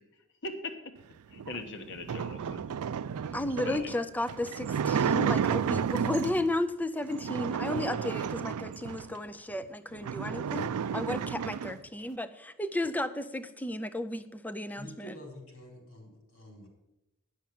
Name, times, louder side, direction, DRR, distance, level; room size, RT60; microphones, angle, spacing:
voice 1, 0.4-0.7 1.3-2.6 3.2-3.3 3.6-4.0, left 3 dB, 55° left, 7 dB, 1.2 m, -40 dB
sound 1, 1.4-6.5 7.1-9.2 9.6-9.7 9.9-11.8, right 7 dB, 85° right, 0.4 m, -32 dB
voice 2, 3.3-15.2, left 1 dB, 5° left, 11 dB, 0.4 m, -34 dB
voice 3, 14.7-16.7, equal, 75° left, 0 dB, 4.4 m, -47 dB
10.5 x 6.5 x 7.6 m, 0.92 s
head